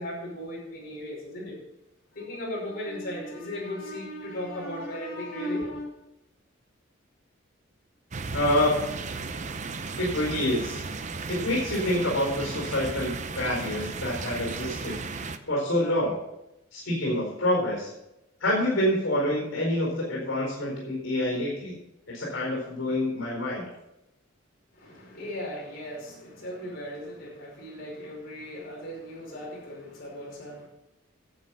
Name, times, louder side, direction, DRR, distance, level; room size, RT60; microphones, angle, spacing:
voice 1, 0.0-1.6 2.1-5.9 24.7-30.7, left 1 dB, 50° left, -4 dB, 5.2 m, -36 dB
sound 1, 8.1-15.4, right 4 dB, 35° right, 0.6 m, -35 dB
voice 2, 8.3-8.7 10.0-10.8 11.3-14.9 15.5-16.2 16.7-17.9 18.4-21.7 22.1-23.6, left 1 dB, 70° left, -3 dB, 4.5 m, -27 dB
11.5 x 7.8 x 5.5 m, 0.89 s
head